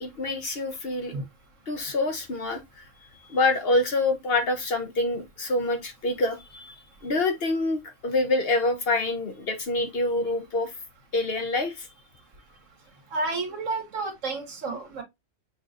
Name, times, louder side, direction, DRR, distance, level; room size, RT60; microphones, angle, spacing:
voice 1, 0.0-1.1 1.7-2.6 3.3-6.8 7.0-10.7 11.1-11.9, left 2 dB, 50° left, 1.0 m, -26 dB
voice 2, 13.1-15.0, right 3 dB, 75° right, 1.6 m, -31 dB
6.4 x 3.0 x 2.6 m
omnidirectional pair, 1.3 m